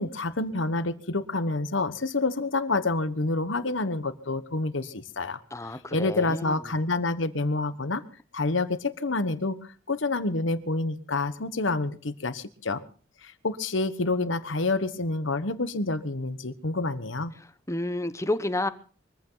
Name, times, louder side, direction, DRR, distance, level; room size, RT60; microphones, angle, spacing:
voice 1, 0.0-5.4 5.9-8.0 8.3-9.6 9.9-12.8 13.2-17.3, left 2 dB, 70° left, 13 dB, 1.3 m, -28 dB
voice 2, 5.5-6.5 17.7-18.7, left 1 dB, 15° left, 12 dB, 1.0 m, -30 dB
23.0 x 14.5 x 4.0 m, 0.40 s
head